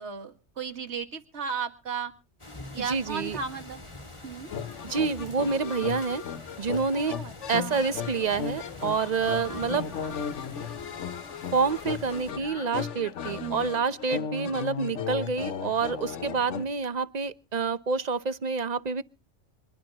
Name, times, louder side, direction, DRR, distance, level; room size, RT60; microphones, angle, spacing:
voice 1, 0.0-2.1 2.7-3.8 4.2-4.5 6.9-7.9 9.5-10.2 13.4-13.7, right 6 dB, 70° right, 2.1 m, -36 dB
sound 1, 2.4-12.3, left 2 dB, 25° left, 2.3 m, -45 dB
voice 2, 2.8-3.4 4.8-6.2 6.6-7.2 7.5-9.9 11.5-19.0, right 5 dB, 40° right, 0.9 m, -28 dB
sound 2, 4.5-16.7, left 7 dB, 85° left, 1.2 m, -36 dB
25.5 x 12.0 x 2.9 m
omnidirectional pair, 1.2 m